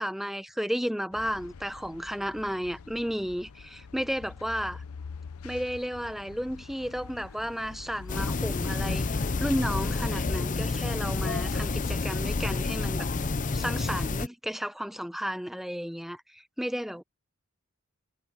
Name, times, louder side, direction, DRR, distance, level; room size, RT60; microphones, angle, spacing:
voice 1, 0.0-4.8 5.4-13.1 13.5-17.0, equal, ahead, 0.8 m, -33 dB
sound 1, 1.1-10.0, left 5 dB, 75° left, 0.6 m, -46 dB
sound 2, 8.1-14.3, left 3 dB, 35° left, 0.6 m, -29 dB
head